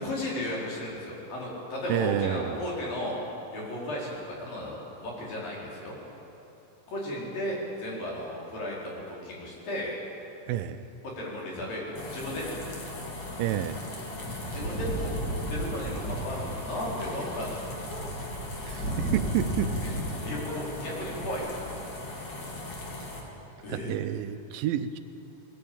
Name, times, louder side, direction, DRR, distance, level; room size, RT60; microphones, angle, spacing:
voice 1, 0.0-3.2 3.5-5.9 6.9-10.0 11.0-12.5 14.4-15.1 15.5-17.7 19.8-21.9 23.6-23.9, left 1 dB, 70° left, -4 dB, 6.2 m, -35 dB
voice 2, 1.9-2.6 10.5-10.8 13.4-13.8 18.6-19.7 23.7-25.0, right 11 dB, 80° right, 10 dB, 2.3 m, -29 dB
sound 1, 11.9-23.2, left 2 dB, 45° left, 3.7 m, -39 dB
sound 2, 14.2-20.2 20.4-21.3, right 1 dB, 30° left, 3.4 m, -34 dB
20.5 x 18.5 x 8.8 m, 2.9 s
omnidirectional pair, 4.2 m